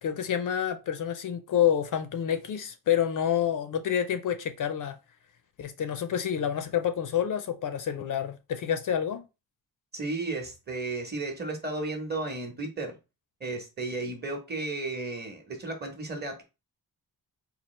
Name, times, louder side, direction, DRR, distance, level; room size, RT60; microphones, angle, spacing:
voice 1, 0.0-4.9 5.6-9.2, left 9 dB, 60° left, 0.4 m, -28 dB
voice 2, 9.9-13.0 13.4-16.4, right 2 dB, 25° right, 0.9 m, -34 dB
4.3 x 2.4 x 3.1 m
wide cardioid pair, 170°, 37 cm